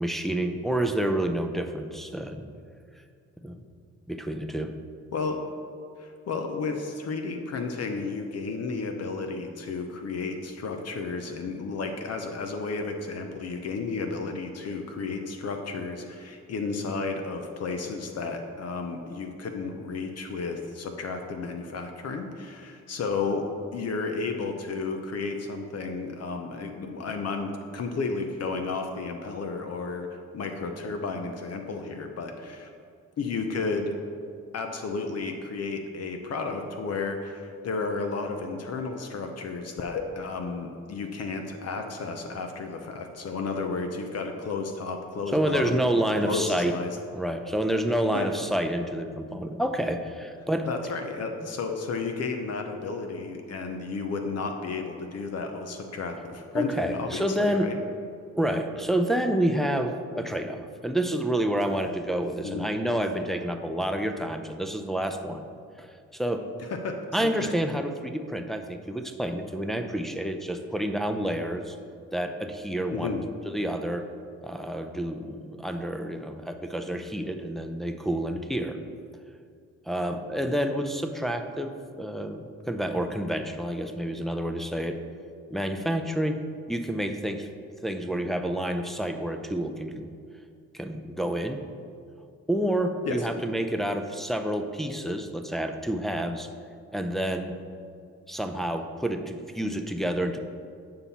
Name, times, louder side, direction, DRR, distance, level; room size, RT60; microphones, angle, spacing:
voice 1, 0.0-2.5 3.4-3.6 4.1-4.7 45.3-46.7 47.1-50.7 56.5-57.7 58.4-65.4 65.8-65.9 66.1-66.5 67.1-71.8 72.1-73.2 73.5-74.1 74.4-78.8 79.9-85.0 85.5-86.4 86.7-87.5 87.8-90.1 90.7-91.6 92.5-96.5 96.9-97.5 98.3-100.4, right 1 dB, ahead, 5 dB, 0.5 m, -29 dB
voice 2, 5.1-5.4 6.0-23.5 23.7-30.1 30.3-32.7 33.2-33.9 34.5-45.8 46.2-47.0 48.1-48.3 50.7-57.8 62.4-62.7 66.8-67.5 72.9-73.2 93.1-93.3, left 4 dB, 55° left, 5 dB, 0.8 m, -32 dB
9.0 x 5.6 x 4.2 m, 2.3 s
cardioid pair, 90°, 30 cm